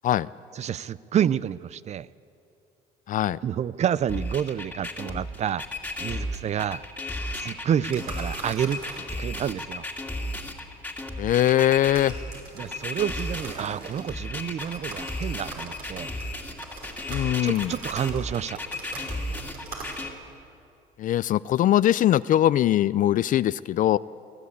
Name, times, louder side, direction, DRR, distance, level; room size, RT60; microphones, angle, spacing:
voice 1, 0.5-2.1 3.4-5.6 6.0-6.8 7.3-9.8 12.6-16.1 17.4-18.6, right 9 dB, 40° right, 19 dB, 0.5 m, -29 dB
voice 2, 3.1-3.4 11.2-12.1 17.1-17.7 21.0-24.0, left 12 dB, 50° left, 18 dB, 0.4 m, -21 dB
sound 1, 4.1-20.1, left 1 dB, 10° left, 2.3 m, -34 dB
sound 2, 7.9-20.3, right 3 dB, 70° right, 5.4 m, -43 dB
23.0 x 15.0 x 8.4 m, 2.6 s
cardioid pair, 110°, 17 cm